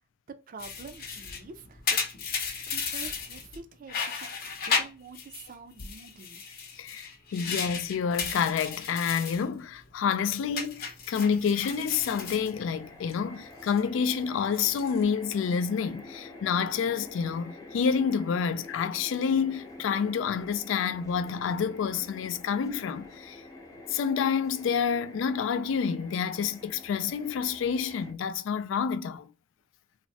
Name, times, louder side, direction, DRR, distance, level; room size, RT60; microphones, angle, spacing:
voice 1, 0.5-2.0 2.7-4.4 4.7-6.4, right 4 dB, 45° right, 0.4 m, -47 dB
sound 1, 0.6-3.6 3.9-5.5 5.8-9.4 9.8-10.1 10.5-13.1 13.4-13.8 14.4-15.0, left 5 dB, 50° left, 0.7 m, -34 dB
voice 2, 6.8-23.4 23.9-29.3, left 6 dB, 75° left, 0.3 m, -28 dB
sound 2, 11.9-28.1, left 2 dB, 20° left, 0.5 m, -47 dB
3.2 x 2.0 x 2.7 m
head